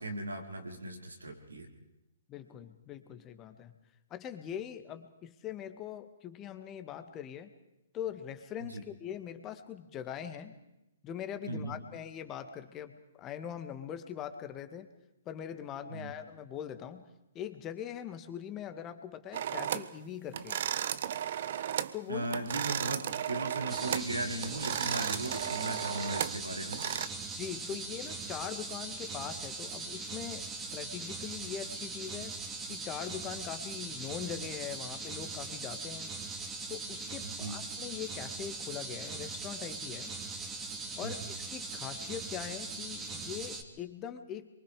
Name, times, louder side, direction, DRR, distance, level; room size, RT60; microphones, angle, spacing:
voice 1, 0.0-1.7 8.7-8.8 11.5-11.8 15.9-16.1 22.1-26.8 37.2-37.6 41.0-41.1, right 2 dB, 85° right, 2 dB, 4.8 m, -37 dB
voice 2, 2.3-3.7 4.1-7.5 7.9-10.6 11.0-14.9 15.3-17.1 17.3-20.6 21.9-22.3 27.3-32.4 32.7-36.2 36.7-40.1 41.0-44.5, left 9 dB, 25° left, 8 dB, 2.0 m, -42 dB
sound 1, 19.3-19.9 20.3-22.0 22.2-24.1 24.4-27.1, right 10 dB, 55° right, 1.0 m, -34 dB
sound 2, 23.7-43.6, right 3 dB, 15° right, 2.7 m, -40 dB
27.0 x 24.0 x 5.0 m, 0.90 s
figure-of-eight pair, 125°, 0 cm